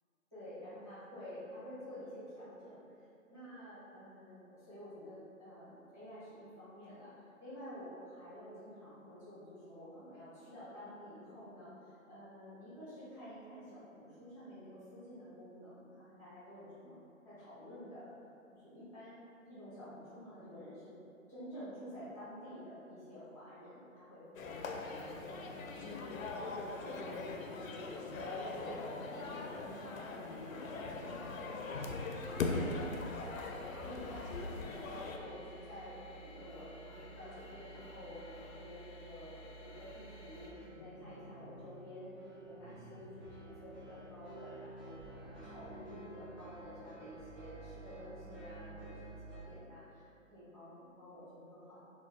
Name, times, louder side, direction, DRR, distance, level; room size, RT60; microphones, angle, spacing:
voice 1, 0.3-2.8 3.3-17.0 17.2-18.1 18.5-19.2 19.5-20.9 21.3-25.4 25.9-26.5 26.8-32.1 32.4-42.1 42.4-50.0 50.3-51.8, equal, 5° right, -14 dB, 1.0 m, -50 dB
sound 1, 24.3-35.2, left 3 dB, 75° left, 0.5 m, -40 dB
sound 2, 32.2-40.5, right 1 dB, 25° left, 0.5 m, -54 dB
sound 3, 40.5-49.4, right 2 dB, 30° right, 1.4 m, -51 dB
4.2 x 2.2 x 2.3 m, 2.6 s
hypercardioid pair, 145°, 41 cm